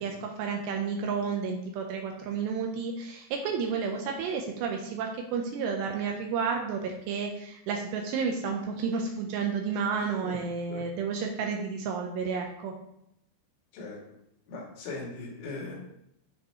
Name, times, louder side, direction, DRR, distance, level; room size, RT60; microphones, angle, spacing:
voice 1, 0.0-12.7, right 5 dB, 75° right, 2 dB, 2.6 m, -31 dB
voice 2, 10.0-10.4 10.7-10.8 13.7-14.0 14.5-15.8, left 3 dB, 65° left, -4 dB, 4.6 m, -39 dB
12.5 x 5.9 x 3.1 m, 0.78 s
omnidirectional pair, 5.8 m